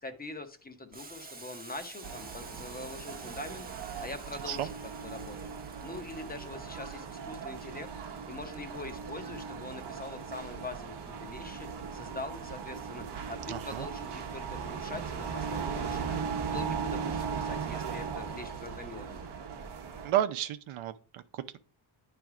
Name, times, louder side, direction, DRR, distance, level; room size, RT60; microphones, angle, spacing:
voice 1, 0.0-5.4 5.8-7.9 8.3-10.9 11.2-19.3, left 2 dB, 20° left, 0.9 m, -43 dB
Boiling, 0.9-19.3, right 3 dB, 20° right, 0.9 m, -53 dB
sound 1, 2.0-20.1, right 6 dB, 55° right, 1.0 m, -38 dB
voice 2, 13.5-13.9 20.0-21.6, right 12 dB, 85° right, 0.7 m, -32 dB
9.2 x 3.4 x 4.8 m
cardioid pair, 100°, 48 cm